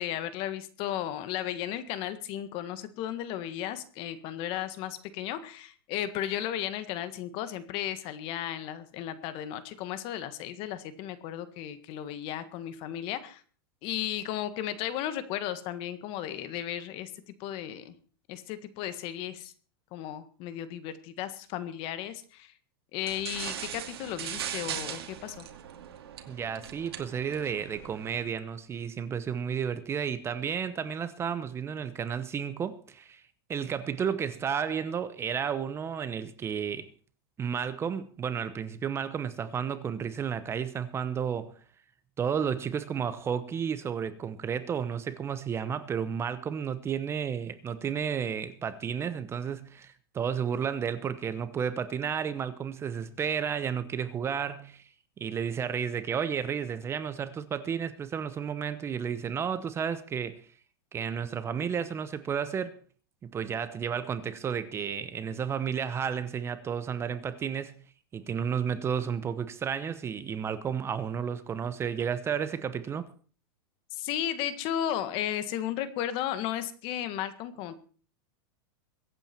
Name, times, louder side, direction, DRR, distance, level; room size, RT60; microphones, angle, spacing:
voice 1, 0.0-13.4 13.8-17.9 18.3-19.5 19.9-22.5 22.9-25.5 73.9-77.7, left 11 dB, 45° left, 1.7 m, -34 dB
sound 1, 23.0-28.3, right 10 dB, 85° right, 2.3 m, -39 dB
voice 2, 26.3-33.2 33.5-36.9 37.4-41.5 42.2-54.9 55.2-60.4 60.9-62.8 63.2-67.8 68.1-73.1, right 7 dB, 20° right, 0.9 m, -32 dB
23.0 x 8.9 x 4.5 m
supercardioid pair, 140°, 13 cm